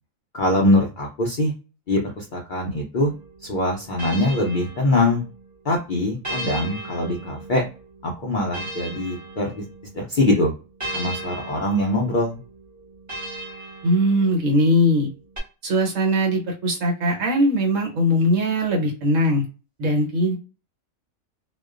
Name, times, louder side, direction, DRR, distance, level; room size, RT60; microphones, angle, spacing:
voice 1, 0.3-1.5 1.9-3.1 3.4-5.2 5.6-7.6 8.0-9.6 9.9-10.5 10.9-12.4, left 1 dB, 60° left, -1 dB, 0.5 m, -22 dB
sound 1, 3.0-5.5 6.2-10.0 10.8-14.6 15.4-15.5, right 2 dB, 15° right, 0.7 m, -36 dB
voice 2, 13.8-15.1 15.6-19.4 19.8-20.4, equal, 65° right, 0 dB, 1.2 m, -20 dB
2.5 x 2.2 x 2.3 m, 0.32 s
omnidirectional pair, 1.4 m